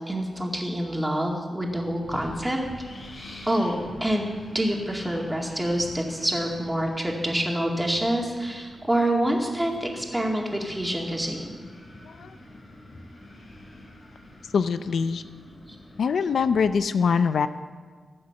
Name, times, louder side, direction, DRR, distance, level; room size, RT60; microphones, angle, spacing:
voice 1, 0.1-2.6 3.5-11.6, right 1 dB, 10° right, 0 dB, 2.2 m, -27 dB
Wind, 1.6-16.7, left 1 dB, 50° left, 3.6 m, -46 dB
Bass guitar, 2.8-9.1, right 2 dB, 10° left, 1.9 m, -53 dB
voice 2, 14.5-15.2 16.0-17.5, left 6 dB, 80° left, 12 dB, 0.5 m, -23 dB
15.5 x 7.8 x 7.0 m, 1.5 s
wide cardioid pair, 90°, 0 cm